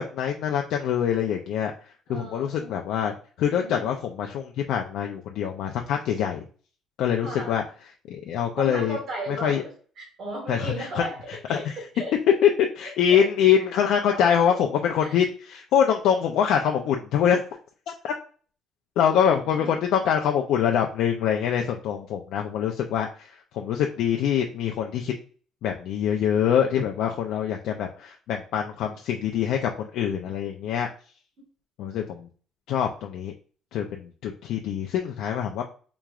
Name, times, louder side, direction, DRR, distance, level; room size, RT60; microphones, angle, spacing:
voice 1, 0.0-1.7 2.1-6.4 7.0-7.6 8.1-9.0 9.4-9.6 10.5-11.7 12.4-12.5 12.8-17.4 18.0-18.1 19.0-25.1 25.6-30.9 31.8-32.3 32.7-33.3 33.7-35.6, left 8 dB, 70° left, 2 dB, 0.4 m, -24 dB
voice 2, 2.1-2.7 3.5-3.8 7.2-7.5 8.6-12.4 13.1-13.3 13.6-13.7 14.1-14.6 15.0-15.2 19.5-19.8, right 1 dB, 40° right, -1 dB, 1.3 m, -36 dB
4.7 x 3.0 x 2.4 m, 0.41 s
cardioid pair, 180°, 0 cm